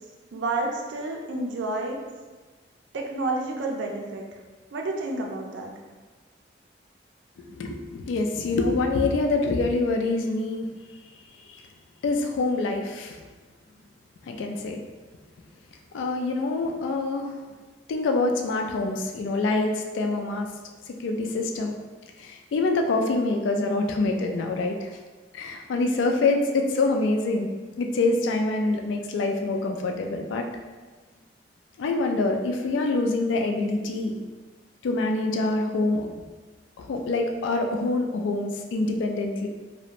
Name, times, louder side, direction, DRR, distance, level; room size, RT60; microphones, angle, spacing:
voice 1, 0.3-2.0 2.9-4.2 4.7-5.7, right 2 dB, 75° right, 1 dB, 0.4 m, -30 dB
voice 2, 7.4-10.7 11.5-11.6 12.0-13.2 14.2-14.8 15.9-17.3 17.9-20.5 21.0-21.7 22.2-24.9 25.3-27.5 27.8-30.5 31.8-34.1 34.8-36.1 36.8-39.5, left 2 dB, 80° left, 3 dB, 0.3 m, -25 dB
2.4 x 2.1 x 2.8 m, 1.3 s
head